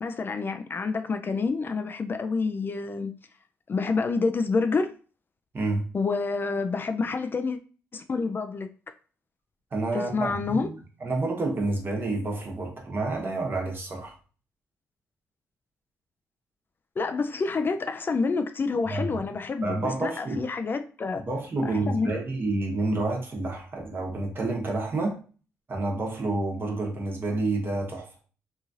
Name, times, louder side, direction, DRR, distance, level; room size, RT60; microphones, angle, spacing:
voice 1, 0.0-3.1 3.7-4.9 5.9-7.6 7.9-8.7 9.9-10.7 17.0-21.2 21.6-22.2, left 4 dB, 40° left, 0.3 m, -28 dB
voice 2, 5.5-5.9 9.7-10.7 11.0-14.1 18.9-19.1 19.6-20.4 21.3-25.2 25.7-28.1, right 2 dB, 40° right, 1.1 m, -29 dB
3.0 x 2.7 x 2.4 m
supercardioid pair, 65°, 6 cm